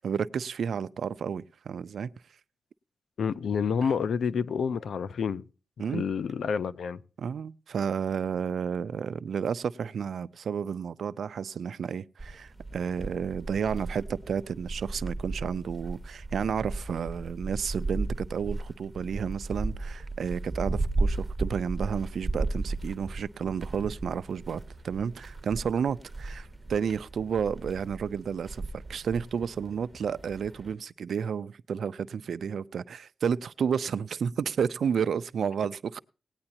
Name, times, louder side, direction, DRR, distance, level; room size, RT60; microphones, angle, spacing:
voice 1, 0.0-2.1 5.8-6.0 7.2-36.0, right 7 dB, 75° right, 0.5 m, -31 dB
voice 2, 3.2-5.4 5.9-7.0, left 6 dB, 75° left, 0.6 m, -28 dB
sound 1, 12.2-30.7, right 2 dB, 10° right, 1.8 m, -35 dB
18.5 x 9.8 x 2.8 m
cardioid pair, 90°, 0 cm